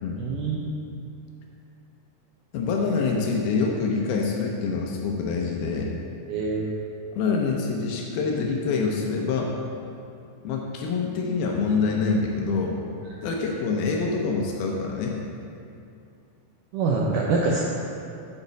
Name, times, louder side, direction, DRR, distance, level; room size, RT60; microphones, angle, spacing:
voice 1, 0.2-0.7 6.3-6.7 16.7-17.7, right 3 dB, 85° right, -2 dB, 1.8 m, -25 dB
voice 2, 2.5-6.0 7.1-9.5 10.4-12.8 13.2-15.2, left 4 dB, 80° left, 0 dB, 2.5 m, -26 dB
9.6 x 7.2 x 3.9 m, 2.6 s
omnidirectional pair, 4.5 m